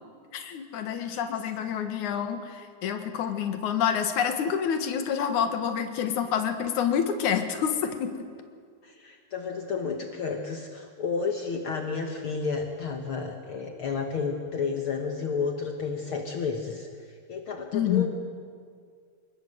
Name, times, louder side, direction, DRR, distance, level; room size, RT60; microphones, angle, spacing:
voice 1, 0.3-8.1 17.7-18.1, left 8 dB, 60° left, 7 dB, 2.7 m, -28 dB
voice 2, 1.1-1.4 8.8-18.1, left 5 dB, 75° left, 3 dB, 1.2 m, -31 dB
26.5 x 20.5 x 7.9 m, 2.1 s
omnidirectional pair, 4.5 m